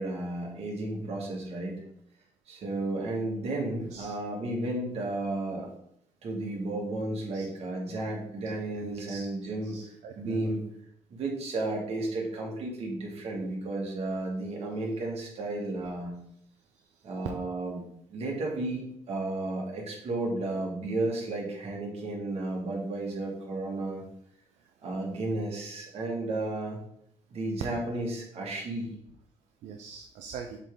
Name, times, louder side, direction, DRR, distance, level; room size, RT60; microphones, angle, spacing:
voice 1, 0.0-1.8 2.5-5.7 6.2-9.8 10.2-10.6 11.1-16.1 17.0-17.8 18.1-24.0 24.8-26.8 27.3-28.9, right 2 dB, 60° right, -2 dB, 2.1 m, -33 dB
voice 2, 8.5-10.5 29.6-30.6, right 6 dB, 85° right, 4 dB, 0.6 m, -43 dB
7.2 x 3.6 x 3.8 m, 0.73 s
cardioid pair, 95°, 12 cm